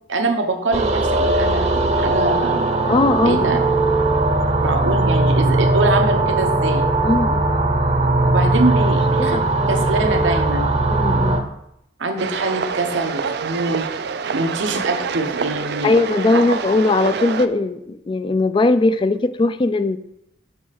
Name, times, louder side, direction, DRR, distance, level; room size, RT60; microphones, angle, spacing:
voice 1, 0.1-2.7 3.2-3.6 4.6-7.1 8.3-9.4 9.7-10.8 12.0-13.9 14.3-16.0 16.3-16.4, right 2 dB, 85° right, 4 dB, 1.0 m, -24 dB
sound 1, 0.7-11.4, right 2 dB, 35° right, 0.8 m, -19 dB
voice 2, 2.9-3.4 7.0-7.5 8.8-9.4 9.7-9.8 10.9-11.5 14.7-14.8 15.8-20.0, left 2 dB, 25° left, 12 dB, 0.3 m, -19 dB
sound 2, 12.2-17.5, right 5 dB, 60° right, 0.4 m, -26 dB
7.1 x 6.0 x 4.1 m, 0.79 s
head